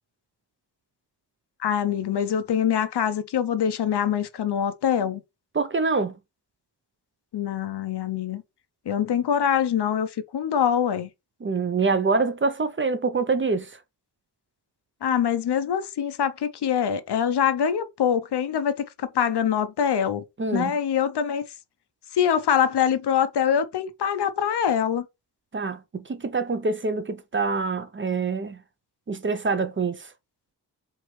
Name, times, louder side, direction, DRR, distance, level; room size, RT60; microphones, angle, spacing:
voice 1, 1.6-5.2 7.3-8.4 8.9-11.1 15.0-20.2 20.5-21.4 22.1-25.1, left 8 dB, 75° left, 0.6 m, -24 dB
voice 2, 5.5-6.1 11.4-13.7 20.4-20.7 25.5-28.6 29.1-30.1, right 4 dB, 30° right, 0.5 m, -25 dB
4.6 x 2.9 x 3.1 m
wide cardioid pair, 80°, 41 cm